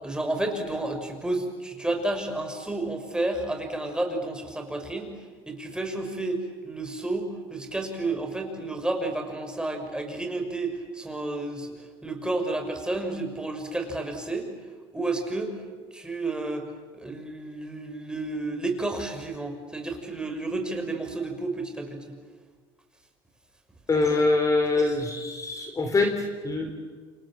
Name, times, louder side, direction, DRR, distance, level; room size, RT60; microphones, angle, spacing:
voice 1, 0.0-5.1 5.5-11.7 12.0-14.5 14.9-15.6 15.9-16.7 16.9-22.2, right 2 dB, 5° right, 4 dB, 6.0 m, -31 dB
voice 2, 23.9-26.2 26.4-26.7, left 3 dB, 25° left, 6 dB, 3.6 m, -24 dB
28.5 x 28.0 x 7.6 m, 1.5 s
supercardioid pair, 95°, 13 cm